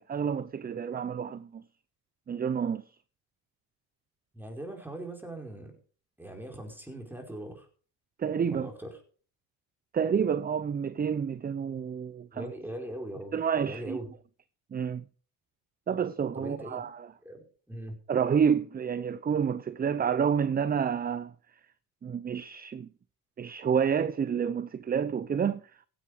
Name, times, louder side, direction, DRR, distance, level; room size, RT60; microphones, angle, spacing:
voice 1, 0.0-1.6 2.3-2.8 8.2-8.7 9.9-12.5 13.3-14.0 14.7-15.0 15.9-17.1 18.1-21.3 22.0-22.9 23.4-25.7, right 7 dB, 25° right, 0.6 m, -29 dB
voice 2, 4.3-5.7 6.2-7.7 8.5-9.0 12.3-14.1 16.4-16.9 17.2-18.0, right 1 dB, 5° right, 4.7 m, -40 dB
16.0 x 8.9 x 4.9 m
cardioid pair, 95°, 37 cm